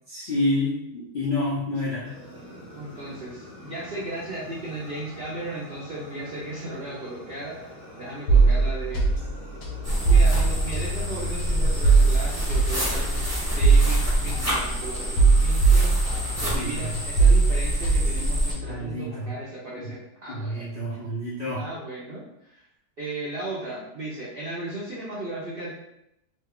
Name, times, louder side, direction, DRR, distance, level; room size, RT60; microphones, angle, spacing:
voice 1, 0.1-2.1 16.3-16.9 18.2-18.3 18.7-19.3 19.8-19.9 20.3-21.7, left 1 dB, 55° left, -9 dB, 0.5 m, -29 dB
Fire, 2.0-17.1, equal, 40° right, 0.9 m, -45 dB
voice 2, 2.8-9.1 10.0-13.2 13.5-16.0 16.4-20.7 21.6-22.6 23.0-25.7, right 1 dB, 60° right, -7 dB, 0.6 m, -36 dB
sound 1, 8.3-16.7 16.9-18.9, right 4 dB, 80° left, 1.3 m, -21 dB
sound 2, 9.8-18.5, equal, 10° right, 0.8 m, -28 dB
3.0 x 2.2 x 3.5 m, 0.82 s
omnidirectional pair, 1.8 m